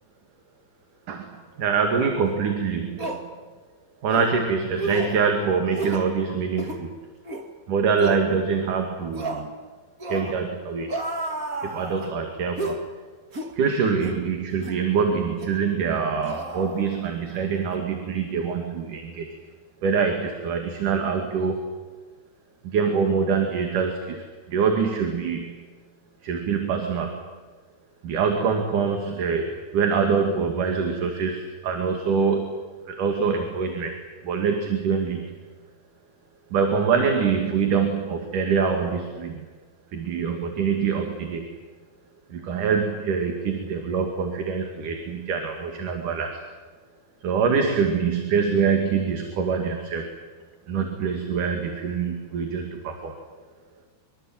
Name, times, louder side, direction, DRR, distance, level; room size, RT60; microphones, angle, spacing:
voice 1, 1.6-3.2 4.0-6.9 7.7-9.5 10.1-10.9 11.6-12.8 13.6-19.3 19.8-21.6 22.6-25.7 26.2-27.1 28.0-33.9 34.2-35.3 36.5-39.4 39.9-41.5 42.3-46.4 47.2-50.1 50.7-53.2, right 5 dB, 50° right, 4 dB, 3.5 m, -24 dB
sound 1, 2.3-2.4 3.0-3.2 4.1-4.3 4.8-5.2 5.7-6.1 6.5-6.8 7.2-7.5 8.0-8.2 9.1-9.5 10.0-10.4 10.9-12.1 12.6-12.8 13.3-13.5 14.0-14.2 14.6-14.8 15.4-15.6 16.2-17.3 17.6-17.8, right 2 dB, 30° right, 1.6 m, -32 dB
25.5 x 24.5 x 9.0 m, 1.4 s
omnidirectional pair, 5.1 m